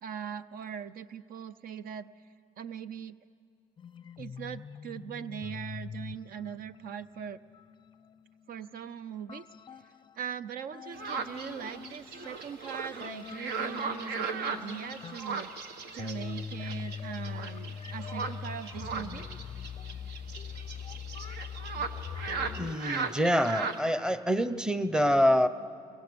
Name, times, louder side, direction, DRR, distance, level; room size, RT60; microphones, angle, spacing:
voice 1, 0.0-2.1 2.6-3.2 4.2-7.4 8.5-9.5 10.2-15.5 15.9-19.3, right 8 dB, 60° right, 14 dB, 0.6 m, -40 dB
sound 1, 3.8-10.4 10.7-22.8, left 7 dB, 30° left, 0.5 m, -43 dB
sound 2, 10.9-23.8, right 5 dB, 80° right, 1.6 m, -37 dB
voice 2, 22.6-25.5, equal, 5° right, 12 dB, 0.9 m, -26 dB
30.0 x 22.0 x 7.0 m, 2.3 s
cardioid pair, 110°, 17 cm